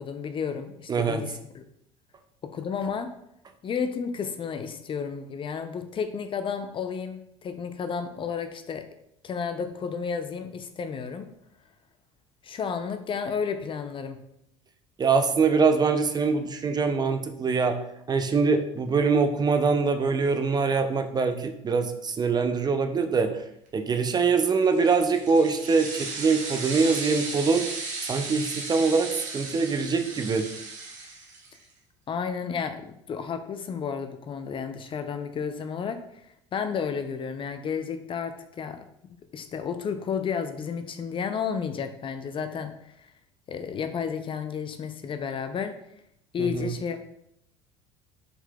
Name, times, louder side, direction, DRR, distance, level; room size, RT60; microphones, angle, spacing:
voice 1, 0.0-1.6 2.4-3.1 3.6-8.9 9.2-11.3 12.4-14.2 32.1-36.0 36.5-43.1 43.5-45.7 46.3-47.0, left 6 dB, 35° left, 8 dB, 0.4 m, -32 dB
voice 2, 0.9-1.2 15.0-17.8 18.1-23.4 23.7-27.7 28.1-30.5 46.4-46.7, right 4 dB, 25° right, 7 dB, 0.5 m, -23 dB
sound 1, 24.7-31.6, right 3 dB, 55° right, 1.2 m, -36 dB
4.4 x 4.0 x 2.2 m, 0.77 s
hypercardioid pair, 75°, 16 cm